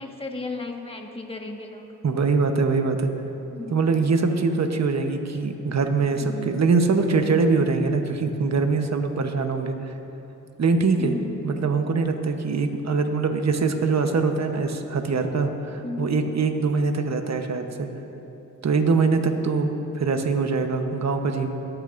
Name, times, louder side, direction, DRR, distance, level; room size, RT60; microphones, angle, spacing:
voice 1, 0.0-1.9 3.5-3.8 6.2-6.6 11.0-11.5 15.8-16.3 19.5-19.7, left 3 dB, 15° left, 1 dB, 1.5 m, -35 dB
voice 2, 2.0-3.1 3.7-9.9 10.6-11.1 11.4-17.9 18.6-21.5, right 4 dB, 55° right, 5 dB, 1.0 m, -23 dB
24.0 x 9.0 x 2.6 m, 3.0 s
cardioid pair, 60°, 32 cm